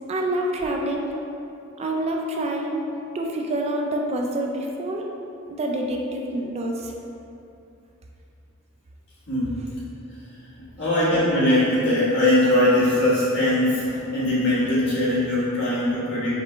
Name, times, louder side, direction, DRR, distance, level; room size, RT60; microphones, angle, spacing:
voice 1, 0.1-1.1 1.8-2.9 3.1-5.1 5.5-6.9, right 1 dB, 30° right, 0 dB, 0.3 m, -27 dB
voice 2, 9.3-9.6 10.8-16.4, left 1 dB, 60° left, -9 dB, 1.5 m, -21 dB
4.9 x 3.1 x 3.2 m, 2.7 s
head